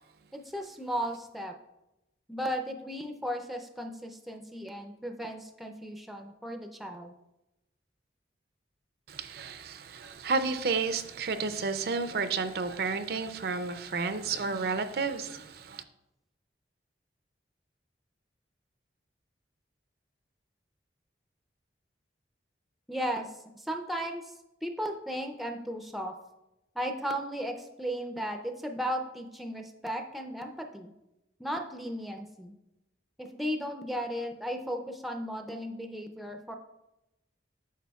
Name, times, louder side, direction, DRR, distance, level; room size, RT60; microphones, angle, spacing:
voice 1, 0.3-1.5 2.3-7.1 22.9-24.3 24.6-26.2 26.8-30.9 31.4-32.6 33.2-36.5, equal, ahead, 0.4 m, -35 dB
voice 2, 9.2-15.4, right 4 dB, 55° right, 0.4 m, -31 dB
9.1 x 6.2 x 2.3 m
head